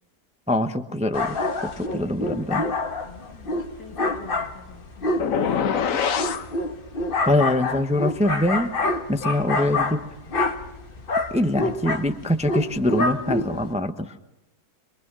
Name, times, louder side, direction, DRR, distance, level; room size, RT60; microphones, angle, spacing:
voice 1, 0.5-2.7 7.3-8.7 9.1-10.0 11.3-14.1, left 1 dB, 5° right, 8 dB, 0.7 m, -24 dB
sound 1, 1.1-13.7, left 2 dB, 35° left, 1.3 m, -27 dB
voice 2, 3.3-5.7, left 6 dB, 85° left, 3 dB, 3.1 m, -47 dB
sound 2, 5.2-6.5, left 7 dB, 60° left, 1.3 m, -23 dB
24.5 x 23.0 x 6.2 m, 0.96 s
omnidirectional pair, 1.7 m